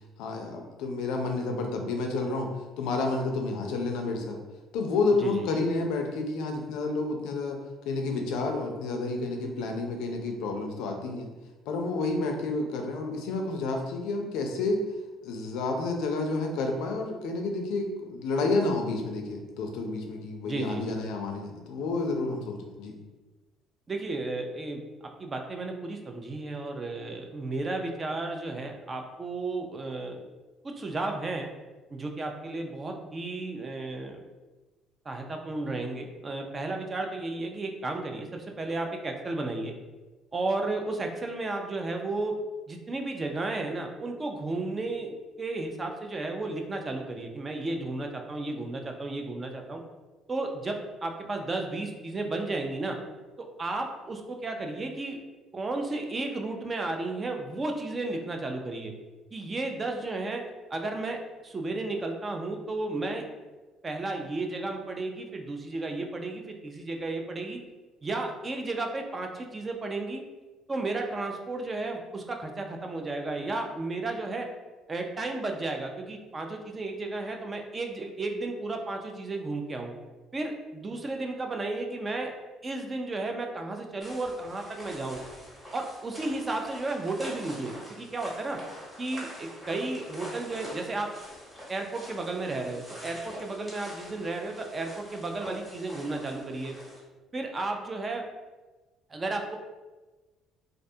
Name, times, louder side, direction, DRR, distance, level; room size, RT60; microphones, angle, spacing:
voice 1, 0.2-2.5 2.8-4.4 4.7-7.6 7.9-11.3 11.7-14.9 15.2-22.9, left 3 dB, 85° left, 3 dB, 0.4 m, -30 dB
voice 2, 20.4-20.9 23.9-30.2 30.6-31.5 31.9-34.2 35.1-39.7 40.3-42.3 42.7-49.8 50.3-53.0 53.4-55.2 55.5-58.9 59.3-60.4 60.7-61.2 61.4-63.2 63.8-67.6 68.0-70.2 70.7-74.5 74.9-79.9 80.3-82.3 82.6-85.2 85.7-88.6 89.0-91.1 91.7-96.8 97.3-98.2 99.1-99.6, right 2 dB, 25° right, 3 dB, 0.3 m, -33 dB
sound 1, 84.0-97.0, equal, 5° right, 0.9 m, -45 dB
2.4 x 2.2 x 2.6 m, 1.2 s
cardioid pair, 115°, 0 cm